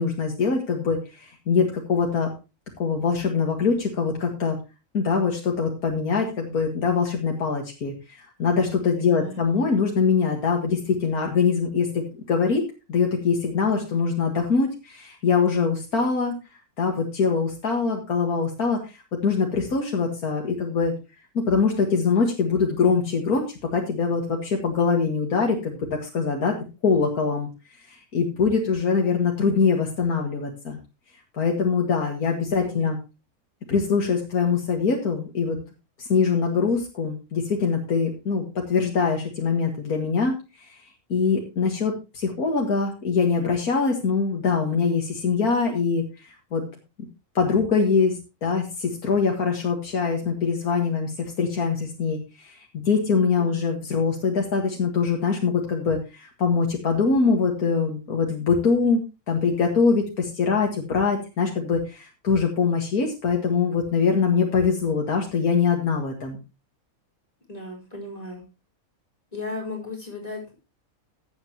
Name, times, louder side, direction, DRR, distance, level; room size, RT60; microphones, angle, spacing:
voice 1, 0.0-2.3 2.8-4.6 4.9-7.9 8.4-12.6 12.9-16.3 16.8-20.9 21.3-23.5 23.7-26.6 26.8-27.5 27.9-30.8 31.4-33.0 33.7-35.6 36.0-40.8 41.1-46.6 47.4-59.0 59.3-66.4, left 5 dB, 85° left, 1 dB, 2.3 m, -23 dB
voice 2, 9.0-9.4 32.6-32.9 53.4-53.6 67.5-68.4 69.3-70.5, left 2 dB, 25° left, 0 dB, 4.9 m, -36 dB
15.0 x 8.7 x 3.0 m, 0.29 s
omnidirectional pair, 1.5 m